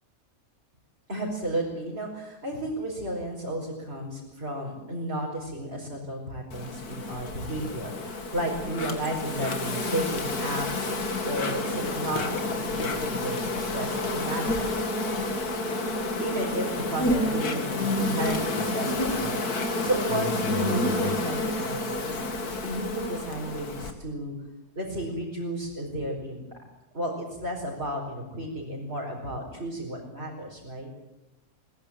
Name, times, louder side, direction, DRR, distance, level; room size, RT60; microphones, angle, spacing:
voice 1, 1.1-11.0 11.2-14.8 16.2-24.3 24.8-26.6 26.9-30.9, right 1 dB, 40° right, -3 dB, 5.7 m, -33 dB
Insect, 6.5-23.9, left 2 dB, 70° left, 2.7 m, -29 dB
23.0 x 21.0 x 9.1 m, 0.96 s
omnidirectional pair, 1.6 m